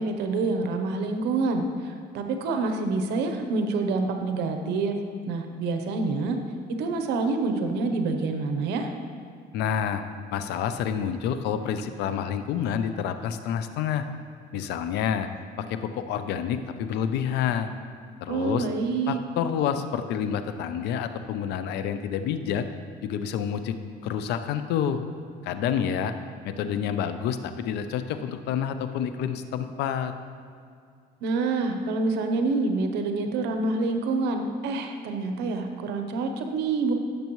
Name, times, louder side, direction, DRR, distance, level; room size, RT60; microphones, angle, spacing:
voice 1, 0.0-5.0 5.3-6.4 6.8-8.9 18.3-19.2 31.2-36.9, right 3 dB, 90° right, 6 dB, 0.9 m, -27 dB
voice 2, 9.5-10.0 10.3-14.0 14.5-15.3 15.7-17.7 18.2-18.7 19.1-22.6 23.0-23.8 24.0-25.0 25.4-26.1 26.4-30.1, left 8 dB, 85° left, 9 dB, 0.6 m, -28 dB
16.0 x 6.8 x 3.1 m, 2.4 s
cardioid pair, 110°, 17 cm